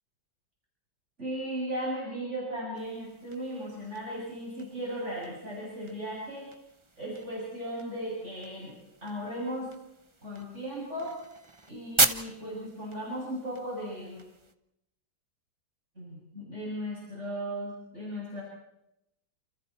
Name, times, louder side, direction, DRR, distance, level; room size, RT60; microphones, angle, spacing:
voice 1, 1.2-6.5 7.0-8.7 9.0-9.7 10.2-11.2 11.7-14.2 16.0-18.4, equal, 40° right, -5 dB, 8.0 m, -36 dB
sound 1, 2.8-14.5, right 3 dB, 20° right, 1.0 m, -36 dB
30.0 x 28.5 x 4.5 m, 0.85 s
omnidirectional pair, 2.0 m